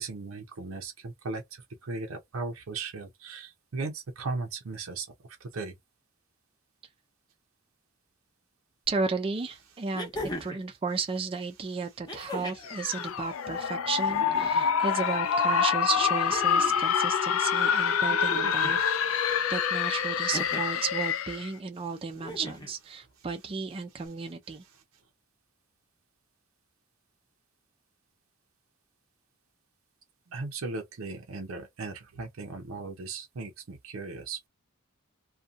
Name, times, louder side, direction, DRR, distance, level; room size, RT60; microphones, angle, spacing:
voice 1, 0.0-1.4 1.8-5.1 5.5-5.7 30.3-34.5, right 3 dB, 85° right, 0.6 m, -37 dB
sound 1, 8.9-9.0 9.9-10.7 12.1-12.7 14.0-14.7 16.0-16.8 18.1-18.8 20.3-20.8 22.2-22.7 24.1-24.2, left 1 dB, 20° left, 0.7 m, -39 dB
voice 2, 8.9-10.1 10.4-24.6, right 5 dB, 25° right, 0.4 m, -34 dB
sound 2, 12.6-21.5, left 7 dB, 75° left, 0.4 m, -26 dB
2.6 x 2.2 x 2.4 m
head